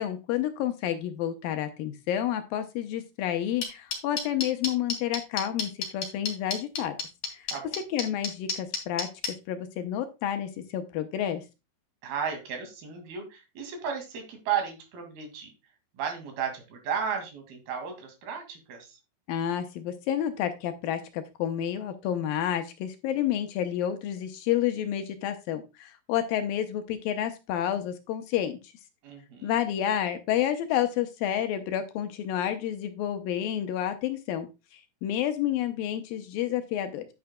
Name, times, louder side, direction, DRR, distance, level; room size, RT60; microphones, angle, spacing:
voice 1, 0.0-7.0 7.3-7.5 7.9-11.4 19.3-28.6 29.4-37.1, left 10 dB, 75° left, 8 dB, 2.3 m, -30 dB
sound 1, 3.6-9.3, left 5 dB, 45° left, 3.1 m, -29 dB
voice 2, 12.0-15.5 15.9-19.0 29.0-29.6, right 7 dB, 75° right, 4 dB, 4.1 m, -34 dB
9.6 x 9.5 x 2.2 m, 0.26 s
omnidirectional pair, 4.4 m